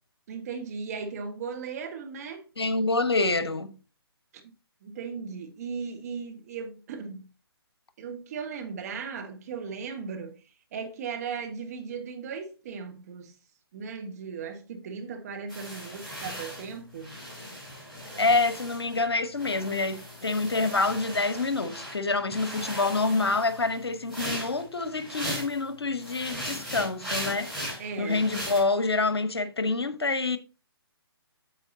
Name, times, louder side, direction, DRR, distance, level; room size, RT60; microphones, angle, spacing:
voice 1, 0.3-2.5 4.8-7.3 8.0-10.4 10.7-13.3 13.7-17.1 27.8-28.3, right 5 dB, 40° right, 1.4 m, -37 dB
voice 2, 2.6-3.7 18.2-30.4, left 3 dB, 75° left, 1.0 m, -27 dB
sound 1, 15.5-19.1 19.4-22.0 22.3-25.6 26.0-28.6, equal, ahead, 3.7 m, -38 dB
8.7 x 7.4 x 2.7 m
figure-of-eight pair, 135°, 13 cm